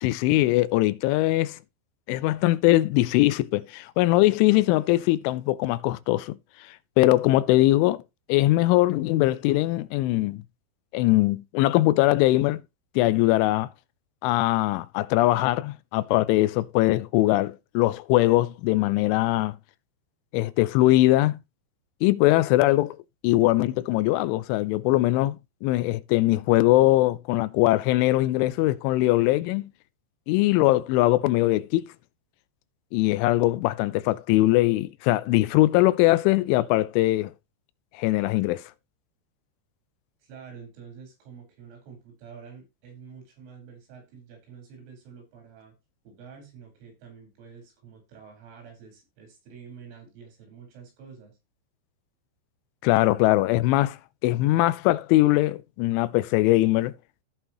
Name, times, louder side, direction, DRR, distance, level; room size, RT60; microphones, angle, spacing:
voice 1, 0.0-1.6 2.1-6.4 7.0-8.0 8.3-10.4 10.9-12.6 13.0-13.7 14.2-19.6 20.3-21.4 22.0-23.0 23.2-29.7 30.3-31.9 32.9-37.3 37.9-38.6 52.8-54.0 54.2-56.9, left 17 dB, 85° left, 3.1 m, -21 dB
voice 2, 40.2-45.8 46.1-51.4, right 6 dB, 90° right, 6.9 m, -47 dB
16.0 x 5.5 x 2.9 m
omnidirectional pair, 5.4 m